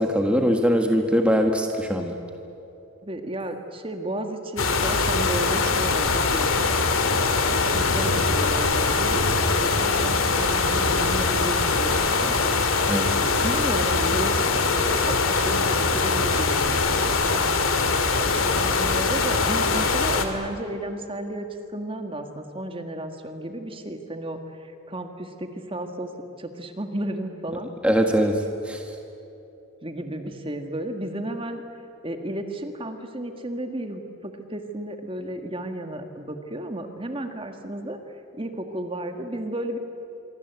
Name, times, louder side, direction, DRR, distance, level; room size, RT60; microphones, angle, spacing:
voice 1, 0.0-2.2 12.9-13.1 27.8-28.9, equal, 5° right, 3 dB, 1.6 m, -22 dB
voice 2, 3.0-6.7 7.5-12.4 13.4-17.6 18.2-21.5 21.7-26.1 26.4-27.7 29.8-31.6 32.0-38.0 38.4-39.8, right 1 dB, 25° right, 6 dB, 1.7 m, -33 dB
sound 1, 4.6-20.3, left 4 dB, 70° left, 2.2 m, -22 dB
26.0 x 23.5 x 8.2 m, 3.0 s
head